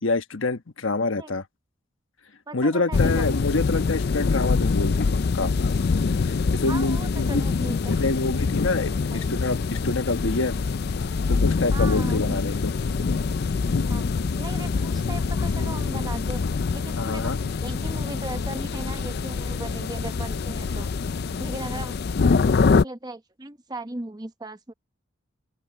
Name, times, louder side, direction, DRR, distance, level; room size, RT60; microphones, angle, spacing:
voice 1, 0.0-1.4 2.5-5.1 5.3-5.5 6.2-7.4 7.9-10.6 11.3-12.7 17.0-17.4, left 3 dB, 70° left, 1.2 m, -26 dB
voice 2, 2.5-3.3 6.7-8.4 9.1-9.3 11.7-12.5 13.9-14.1 14.4-16.4 16.7-20.9 21.4-22.0 22.6-24.7, right 2 dB, 20° right, 0.9 m, -37 dB
sound 1, 2.9-22.8, left 4 dB, 50° left, 0.4 m, -25 dB
open air
head